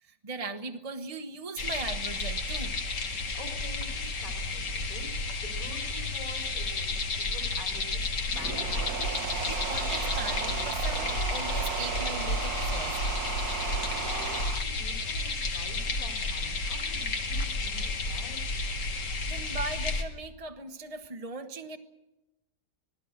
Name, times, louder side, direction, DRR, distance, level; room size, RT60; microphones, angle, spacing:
voice 1, 0.0-2.8 9.4-13.0 19.3-21.8, right 3 dB, 25° right, 5 dB, 1.0 m, -39 dB
sound 1, 1.6-20.0, left 3 dB, 85° left, 2.7 m, -32 dB
voice 2, 3.1-8.1 8.3-8.8 13.5-18.4, left 2 dB, 55° left, 3 dB, 4.0 m, -47 dB
sound 2, 8.2-14.6, right 9 dB, 65° right, 1.4 m, -35 dB
26.0 x 18.5 x 6.5 m, 0.99 s
omnidirectional pair, 1.8 m